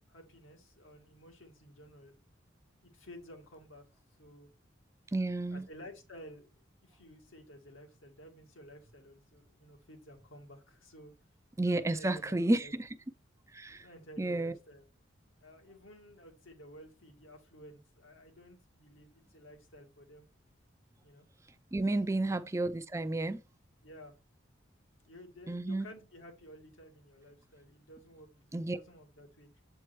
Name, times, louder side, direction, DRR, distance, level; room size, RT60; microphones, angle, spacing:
voice 1, 0.0-2.2 2.8-3.8 4.2-4.5 5.5-6.5 6.8-11.1 11.6-12.8 13.7-14.8 15.4-20.3 21.0-21.3 22.3-22.4 23.8-24.1 25.0-29.6, equal, 80° left, 2.3 m, -53 dB
voice 2, 5.1-5.6 11.6-13.0 13.5-13.9 14.2-14.5 21.7-23.4 25.5-25.9 28.5-28.8, right 2 dB, 15° right, 0.4 m, -31 dB
8.0 x 4.5 x 4.5 m
head